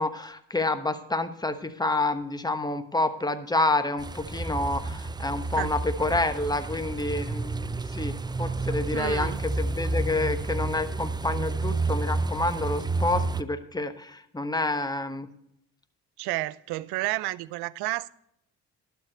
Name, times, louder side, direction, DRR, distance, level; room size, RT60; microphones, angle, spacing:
voice 1, 0.0-15.3, left 2 dB, 10° left, 1.1 m, -28 dB
sound 1, 4.0-13.4, right 3 dB, 10° right, 0.4 m, -30 dB
voice 2, 8.9-9.4 16.2-18.1, right 18 dB, 80° right, 0.5 m, -31 dB
12.0 x 4.7 x 8.0 m
supercardioid pair, 55°, 38 cm